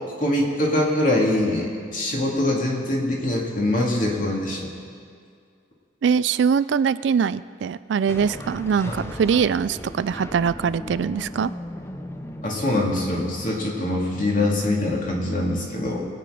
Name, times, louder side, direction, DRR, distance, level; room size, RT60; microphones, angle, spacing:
voice 1, 0.2-4.7 8.8-9.1 12.4-16.0, left 1 dB, 45° left, -2 dB, 2.4 m, -23 dB
voice 2, 6.0-11.5, right 6 dB, 65° right, 16 dB, 0.3 m, -22 dB
sound 1, 8.1-13.2, left 1 dB, 15° left, 0.6 m, -37 dB
22.5 x 8.7 x 5.0 m, 2.2 s
head